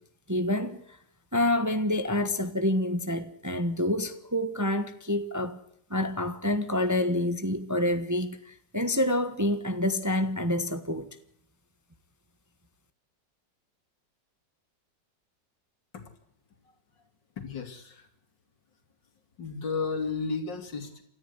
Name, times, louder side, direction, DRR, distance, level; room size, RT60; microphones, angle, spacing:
voice 1, 0.3-0.8 1.3-5.6 5.9-11.2, left 1 dB, 10° right, 1.1 m, -27 dB
voice 2, 17.4-18.1 19.4-21.0, left 4 dB, 75° left, 3.4 m, -33 dB
28.0 x 14.0 x 8.1 m
omnidirectional pair, 1.9 m